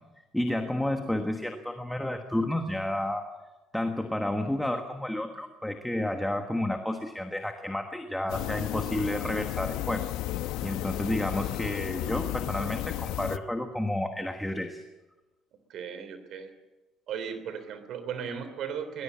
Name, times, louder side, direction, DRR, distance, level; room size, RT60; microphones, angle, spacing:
voice 1, 0.3-3.3 3.7-10.1 10.6-14.8, left 1 dB, 5° left, 5 dB, 1.4 m, -31 dB
sound 1, 8.3-13.4, left 14 dB, 85° left, 0.9 m, -33 dB
voice 2, 15.7-16.5 17.1-19.0, right 7 dB, 50° right, 10 dB, 3.3 m, -36 dB
22.5 x 20.0 x 8.6 m, 1.1 s
cardioid pair, 175°, 0 cm